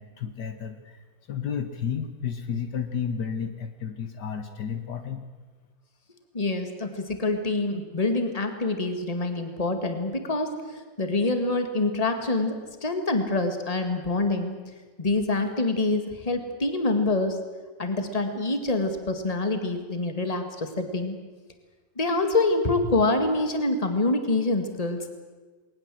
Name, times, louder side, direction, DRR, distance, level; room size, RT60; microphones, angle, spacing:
voice 1, 0.0-5.3, left 7 dB, 65° left, 8 dB, 1.7 m, -32 dB
voice 2, 6.3-14.5 15.0-17.4 17.8-21.2 22.0-25.1, left 2 dB, 20° left, 7 dB, 2.0 m, -26 dB
20.5 x 19.0 x 7.8 m, 1.4 s
omnidirectional pair, 2.0 m